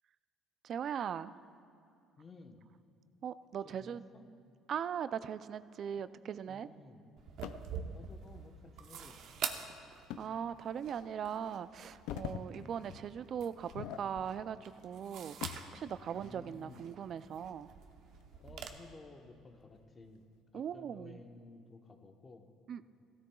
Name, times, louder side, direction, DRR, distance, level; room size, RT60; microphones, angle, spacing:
voice 1, 0.6-1.4 3.2-4.0 4.7-6.7 9.9-15.4 15.7-17.7 20.5-21.2 22.7-22.8, right 8 dB, 50° right, 15 dB, 0.4 m, -40 dB
voice 2, 2.2-2.7 3.6-4.3 6.5-7.0 7.9-9.5 12.3-12.7 15.8-16.9 18.4-20.3 20.5-22.5, left 3 dB, 30° left, 5 dB, 1.0 m, -55 dB
sound 1, 7.2-18.7, right 7 dB, 65° right, 0.8 m, -47 dB
sound 2, 7.4-7.7 10.1-10.3 10.8-10.9 11.8-12.5 12.8-13.1 13.6-14.5 14.8-15.8 17.3-18.4 18.9-19.0 19.7-20.1, left 11 dB, 85° left, 0.4 m, -45 dB
16.0 x 13.5 x 2.3 m, 2.6 s
cardioid pair, 100°, 0 cm